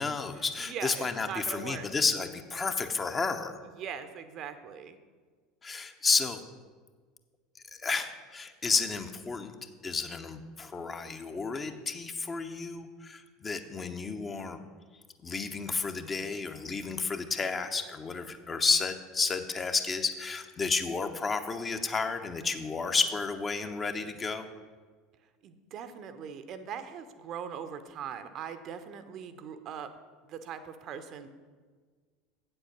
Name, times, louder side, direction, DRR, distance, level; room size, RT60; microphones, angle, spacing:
voice 1, 0.0-3.6 5.6-6.4 7.7-9.5 9.8-14.6 15.2-24.4, left 4 dB, 25° left, 7 dB, 0.8 m, -31 dB
voice 2, 0.6-1.9 3.8-5.0 25.4-29.9 30.2-31.3, right 7 dB, 45° right, 10 dB, 0.7 m, -40 dB
8.3 x 7.8 x 5.9 m, 1.5 s
figure-of-eight pair, 75°, 0 cm